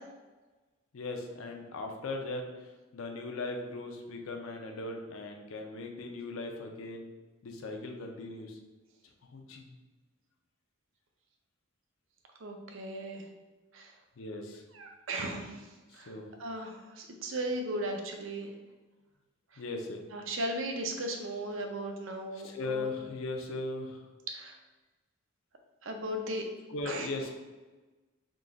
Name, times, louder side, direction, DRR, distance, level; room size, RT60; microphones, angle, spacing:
voice 1, 0.9-2.4 2.9-7.1 7.4-8.5 9.3-9.7 14.2-14.6 16.1-16.3 19.6-20.0 22.4-24.0 26.7-27.3, left 2 dB, 80° left, 3 dB, 0.6 m, -38 dB
voice 2, 12.4-13.2 13.7-13.9 14.7-15.7 15.9-16.1 16.4-18.5 19.5-19.6 20.1-22.9 24.3-24.6 25.8-26.5 26.9-27.1, right 1 dB, 70° right, 3 dB, 0.6 m, -36 dB
3.7 x 2.3 x 3.8 m, 1.2 s
head